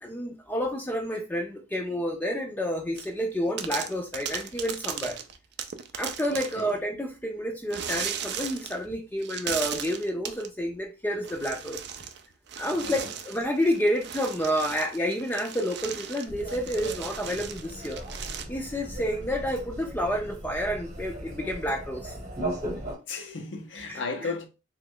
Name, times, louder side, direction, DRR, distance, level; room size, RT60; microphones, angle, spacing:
voice 1, 0.0-5.2 5.9-11.8 12.6-18.0 18.5-22.2 23.9-24.0, equal, 10° left, 0.4 m, -29 dB
sound 1, 3.0-3.2 3.6-6.7 7.7-8.9 9.2-10.5 11.2-12.2 12.5-18.4, right 8 dB, 65° right, 0.4 m, -37 dB
voice 2, 6.3-6.7 12.7-13.1 23.1-24.5, left 3 dB, 80° left, 0.7 m, -35 dB
sound 2, 16.3-23.0, right 1 dB, 40° right, 1.0 m, -38 dB
3.0 x 2.3 x 3.5 m
head